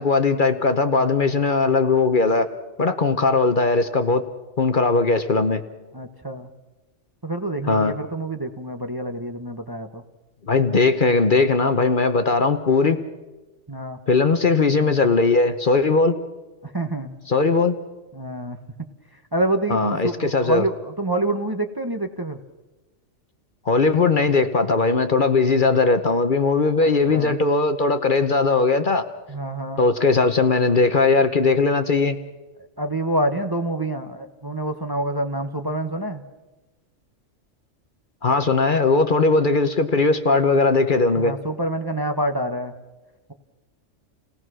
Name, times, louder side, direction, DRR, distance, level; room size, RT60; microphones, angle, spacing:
voice 1, 0.0-2.5 2.8-4.2 4.6-5.6 7.7-7.9 10.5-13.0 14.1-16.1 17.3-17.8 19.7-20.6 23.7-29.1 29.8-32.2 38.2-41.3, left 3 dB, 45° left, 1.0 m, -19 dB
voice 2, 5.9-6.5 7.2-10.0 13.7-14.0 16.6-17.2 18.1-18.6 19.3-22.4 26.8-27.4 29.3-29.8 32.8-36.2 41.1-42.7, right 1 dB, 20° right, 0.9 m, -27 dB
29.0 x 17.5 x 6.2 m
omnidirectional pair, 1.3 m